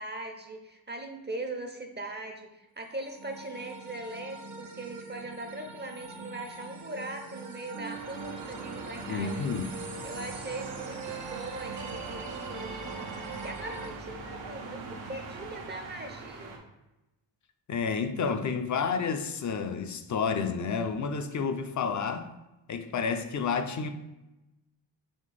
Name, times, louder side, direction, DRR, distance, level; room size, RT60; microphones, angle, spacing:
voice 1, 0.0-9.6 10.0-16.5, right 2 dB, 25° right, 0.5 m, -40 dB
sound 1, 2.9-13.9, right 4 dB, 65° right, 1.0 m, -42 dB
sound 2, 7.9-16.6, right 3 dB, 90° right, 0.9 m, -42 dB
voice 2, 9.0-9.7 17.7-22.3 22.7-23.9, left 5 dB, 40° left, 0.4 m, -30 dB
4.3 x 3.1 x 3.2 m
cardioid pair, 70°, 46 cm